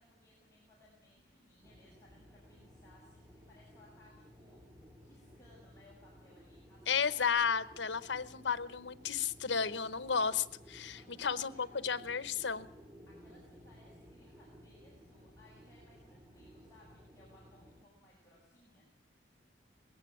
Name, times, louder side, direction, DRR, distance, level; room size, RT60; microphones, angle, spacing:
voice 1, 0.0-4.6 5.0-7.4 10.8-12.6 13.1-18.9, left 1 dB, 20° left, -6 dB, 6.9 m, -64 dB
sound 1, 1.6-17.8, equal, 20° right, 2.4 m, -57 dB
voice 2, 6.9-12.7, left 6 dB, 85° left, 15 dB, 0.9 m, -33 dB
20.5 x 17.5 x 8.5 m, 0.82 s
head